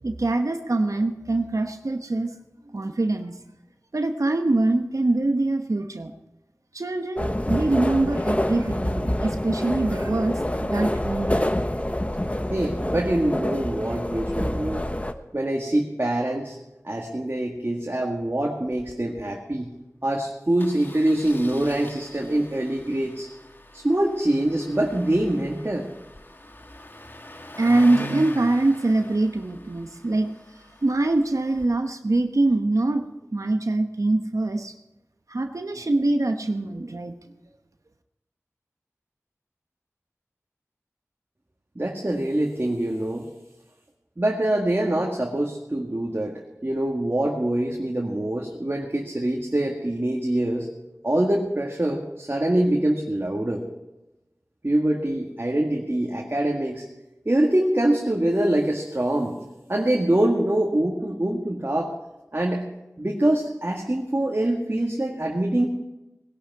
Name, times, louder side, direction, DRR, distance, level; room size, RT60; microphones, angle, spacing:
voice 1, 0.0-2.3 2.7-3.4 3.9-6.1 6.7-11.5 27.6-30.3 30.8-34.7 35.3-37.1, right 2 dB, 80° right, 6 dB, 1.0 m, -24 dB
sound 1, 7.2-15.1, left 1 dB, 25° left, 1.1 m, -27 dB
voice 2, 12.5-14.8 15.3-16.6 16.8-19.7 20.0-23.3 23.7-25.9 41.8-43.3 44.2-50.7 51.0-53.6 54.6-56.8 57.3-59.4 59.7-61.9 62.3-62.7 63.0-65.7, right 1 dB, 45° right, -1 dB, 1.9 m, -24 dB
Engine starting, 18.7-18.9 19.2-19.3 19.5-19.7 20.6-31.7, left 1 dB, 40° left, 1.3 m, -43 dB
19.5 x 11.5 x 4.7 m, 1.0 s
wide cardioid pair, 40°, 6 cm